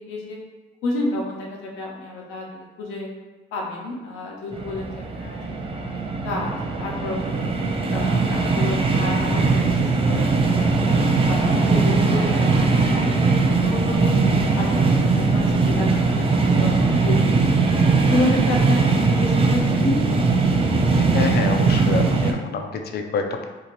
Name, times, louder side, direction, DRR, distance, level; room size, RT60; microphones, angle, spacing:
voice 1, 0.1-0.4 0.8-3.1 3.5-7.2 7.6-10.3 10.5-10.8 11.3-14.1 14.5-15.9 16.2-17.6 18.0-20.2, left 2 dB, 90° left, -2 dB, 0.7 m, -30 dB
sound 1, 4.5-22.3, right 4 dB, 30° right, 0.4 m, -20 dB
voice 2, 20.9-23.5, left 5 dB, 55° left, 5 dB, 0.4 m, -27 dB
2.7 x 2.4 x 3.0 m, 1.2 s
cardioid pair, 90°, 20 cm